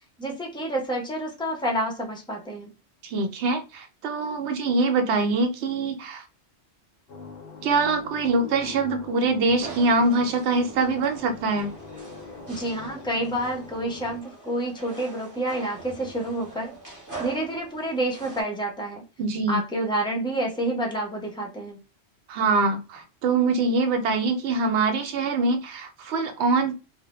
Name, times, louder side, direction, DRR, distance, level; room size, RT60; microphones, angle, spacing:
voice 1, 0.2-2.7 12.5-16.7 17.2-19.0 19.5-21.8, right 1 dB, 5° left, 0 dB, 0.5 m, -28 dB
voice 2, 3.0-6.2 7.6-11.7 19.2-19.6 22.3-26.7, right 3 dB, 80° right, 5 dB, 0.9 m, -24 dB
sound 1, 7.1-14.2, left 4 dB, 65° left, 0.7 m, -43 dB
sound 2, 9.6-18.4, right 3 dB, 20° right, 0.8 m, -43 dB
2.1 x 2.0 x 2.9 m, 0.29 s
omnidirectional pair, 1.1 m